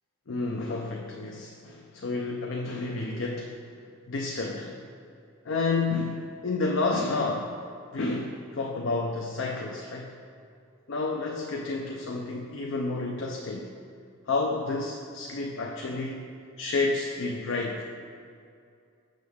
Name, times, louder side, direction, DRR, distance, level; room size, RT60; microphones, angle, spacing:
voice 1, 0.3-4.8 5.4-7.6 7.9-10.2 10.9-13.7 14.3-16.3 16.6-17.9, left 3 dB, 65° left, 0 dB, 0.5 m, -30 dB
6.5 x 6.2 x 3.5 m, 2.4 s
head